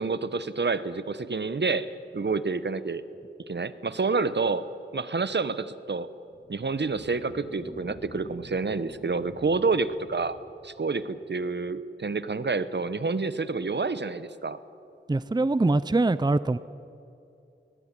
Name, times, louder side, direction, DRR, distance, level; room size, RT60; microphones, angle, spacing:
voice 1, 0.0-3.0 3.5-4.6 4.9-6.1 6.5-10.4 10.6-14.6, right 4 dB, 65° right, 14 dB, 1.1 m, -28 dB
sound 1, 6.2-11.2, left 2 dB, 50° left, 3.0 m, -49 dB
voice 2, 15.1-16.6, right 2 dB, 20° right, 16 dB, 0.6 m, -23 dB
21.0 x 20.0 x 9.9 m, 2.7 s
wide cardioid pair, 60°, 19 cm